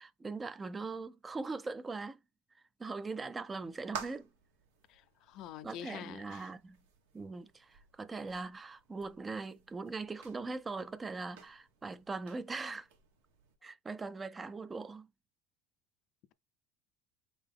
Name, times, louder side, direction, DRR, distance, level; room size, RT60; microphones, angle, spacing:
voice 1, 0.0-2.2 2.8-4.3 5.6-6.8 7.1-12.9 13.6-15.1, right 3 dB, 20° right, 0.4 m, -41 dB
sound 1, 3.4-13.6, right 7 dB, 85° right, 1.6 m, -52 dB
voice 2, 4.9-6.5, left 10 dB, 55° left, 0.5 m, -47 dB
3.9 x 3.5 x 3.5 m
supercardioid pair, 110°, 0 cm